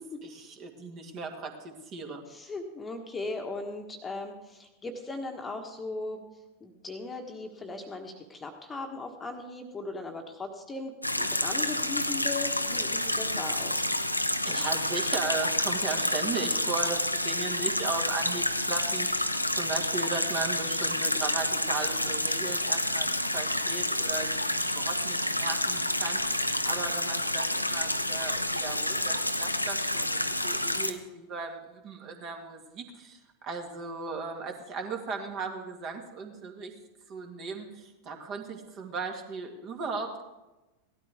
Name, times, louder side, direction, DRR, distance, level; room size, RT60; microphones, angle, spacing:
voice 1, 0.2-2.2 14.5-30.2 30.4-36.8 37.1-40.2, right 4 dB, 35° right, 3 dB, 2.0 m, -37 dB
voice 2, 2.3-6.2 6.6-13.9, left 3 dB, 15° left, 4 dB, 1.4 m, -38 dB
sound 1, 11.0-30.9, left 1 dB, 85° left, 0.7 m, -29 dB
17.0 x 12.5 x 3.6 m, 1.0 s
figure-of-eight pair, 90°, 0 cm